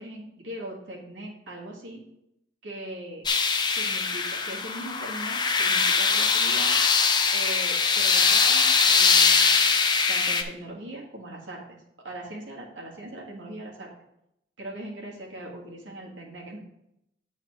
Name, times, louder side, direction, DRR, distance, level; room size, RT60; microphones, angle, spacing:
voice 1, 0.0-2.0 2.6-3.3 3.8-6.7 7.3-9.7 10.1-11.8 12.0-13.9 14.6-16.6, right 1 dB, 85° right, -2 dB, 1.8 m, -40 dB
sound 1, 3.3-10.4, left 5 dB, 25° left, 0.5 m, -22 dB
7.5 x 4.1 x 5.9 m, 0.80 s
head